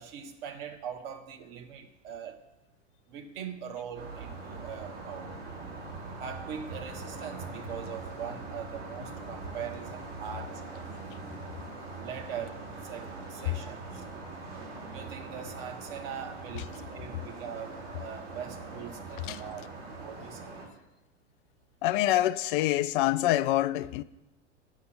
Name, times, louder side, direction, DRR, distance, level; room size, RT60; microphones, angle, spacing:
voice 1, 0.0-2.4 3.1-5.3 6.2-11.0 12.0-14.0 14.9-19.7 20.0-20.5, right 8 dB, 50° right, 1.4 m, -42 dB
sound 1, 3.9-20.7, right 3 dB, 75° right, 3.4 m, -42 dB
voice 2, 21.8-24.0, left 14 dB, 45° left, 0.4 m, -26 dB
8.2 x 6.0 x 7.8 m
figure-of-eight pair, 90°, 36 cm